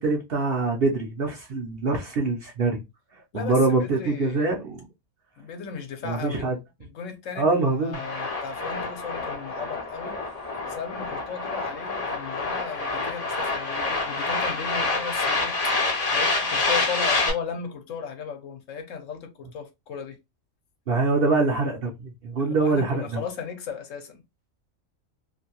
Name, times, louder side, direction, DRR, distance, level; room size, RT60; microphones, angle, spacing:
voice 1, 0.0-2.8 3.3-4.8 6.0-6.5 7.4-8.0 20.9-23.2, right 3 dB, 55° right, 0.7 m, -24 dB
voice 2, 3.3-4.5 5.4-6.5 6.8-10.1 10.7-15.5 15.8-20.2 22.4-24.2, left 6 dB, 70° left, 1.0 m, -36 dB
sound 1, 7.9-17.3, left 3 dB, 40° left, 0.6 m, -27 dB
2.6 x 2.6 x 2.8 m
omnidirectional pair, 1.4 m